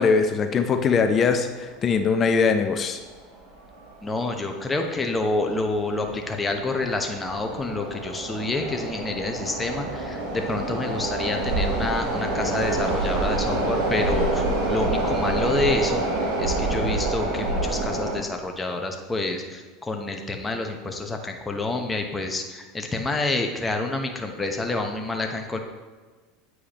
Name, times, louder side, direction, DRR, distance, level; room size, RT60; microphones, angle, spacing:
voice 1, 0.0-3.0, left 5 dB, 35° left, 7 dB, 0.6 m, -21 dB
sound 1, 1.6-1.7 2.5-2.7 3.0-3.2 3.7-4.1 4.6-18.2, right 2 dB, 70° right, 1.6 m, -27 dB
voice 2, 4.0-16.1 16.4-25.6, left 2 dB, 15° left, 4 dB, 1.0 m, -28 dB
8.6 x 4.8 x 3.0 m, 1.4 s
hypercardioid pair, 85°, 0 cm